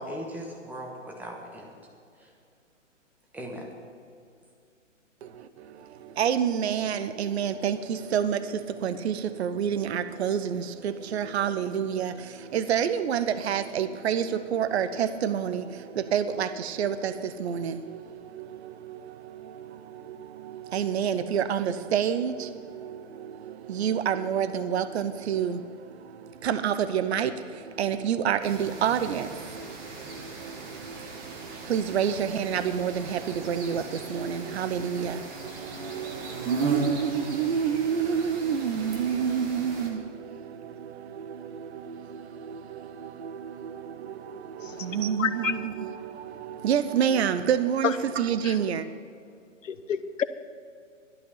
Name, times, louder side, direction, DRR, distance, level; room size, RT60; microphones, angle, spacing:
voice 1, 0.0-1.7 2.2-2.3 3.3-3.7, equal, 5° right, 0 dB, 1.3 m, -38 dB
voice 2, 5.2-48.9, right 8 dB, 55° right, 12 dB, 0.8 m, -29 dB
sound 1, 28.4-39.9, right 2 dB, 20° right, 1.7 m, -39 dB
voice 3, 45.2-45.5 48.4-48.5 49.7-50.2, left 7 dB, 75° left, 12 dB, 0.9 m, -29 dB
12.0 x 11.5 x 5.6 m, 2.4 s
hypercardioid pair, 140°, 39 cm